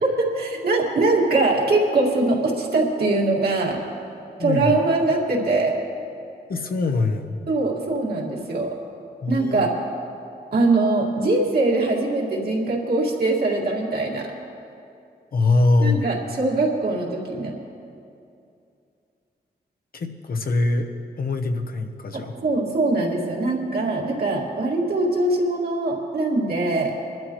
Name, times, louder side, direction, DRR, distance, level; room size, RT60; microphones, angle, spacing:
voice 1, 0.0-3.8 4.4-5.8 7.5-8.8 9.3-9.7 10.5-14.3 15.8-17.6 22.1-27.0, right 2 dB, 65° right, -2 dB, 2.1 m, -22 dB
voice 2, 4.4-4.7 6.5-7.4 9.2-9.6 15.3-16.1 19.9-20.9 21.2-22.3, left 3 dB, 60° left, 5 dB, 1.0 m, -22 dB
22.5 x 12.0 x 3.1 m, 2.5 s
wide cardioid pair, 130°, 17 cm